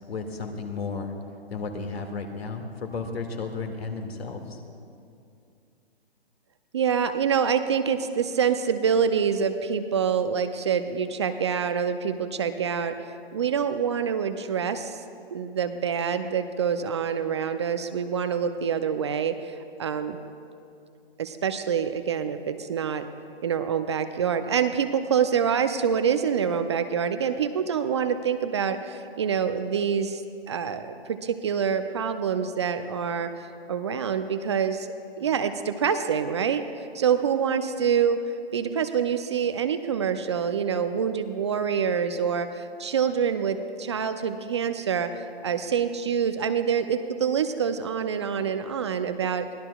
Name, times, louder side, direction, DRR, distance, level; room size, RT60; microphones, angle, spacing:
voice 1, 0.1-1.1 1.5-4.6, left 4 dB, 75° left, 4 dB, 2.1 m, -33 dB
voice 2, 6.7-15.0 15.3-20.2 21.2-23.1 23.4-30.2 30.5-34.9 35.2-36.7 36.9-45.1 45.4-49.5, right 7 dB, 30° right, 10 dB, 0.4 m, -26 dB
23.0 x 17.5 x 2.3 m, 2.6 s
figure-of-eight pair, 135°, 31 cm